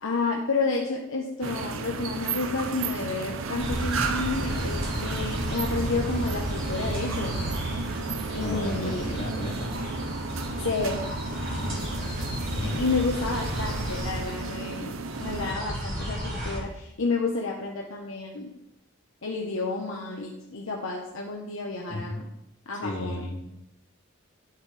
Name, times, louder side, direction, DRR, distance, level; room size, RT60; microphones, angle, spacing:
voice 1, 0.0-7.4 8.3-9.1 10.6-11.1 12.6-14.9 15.2-18.5 19.2-22.2 22.7-23.2, left 3 dB, 85° left, -1 dB, 1.1 m, -30 dB
sound 1, 1.4-15.5, right 4 dB, 90° right, 0.7 m, -34 dB
sound 2, 3.6-14.8 15.1-16.6, equal, 45° right, 3.8 m, -33 dB
voice 2, 8.4-9.7 11.6-11.8 12.5-12.8 21.9-22.2 22.8-23.4, left 1 dB, 60° left, -4 dB, 2.9 m, -33 dB
11.0 x 8.0 x 3.5 m, 0.85 s
head